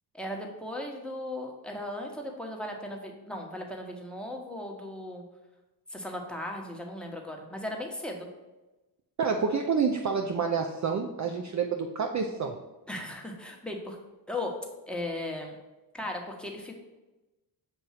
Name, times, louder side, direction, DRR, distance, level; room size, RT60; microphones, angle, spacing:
voice 1, 0.1-5.2 5.9-8.3 12.9-14.0 14.3-14.6 14.9-15.6 15.9-16.8, left 1 dB, ahead, 1 dB, 1.1 m, -37 dB
voice 2, 9.2-12.6, right 5 dB, 40° right, 4 dB, 0.5 m, -28 dB
7.4 x 2.6 x 5.7 m, 1.1 s
cardioid pair, 90°, 46 cm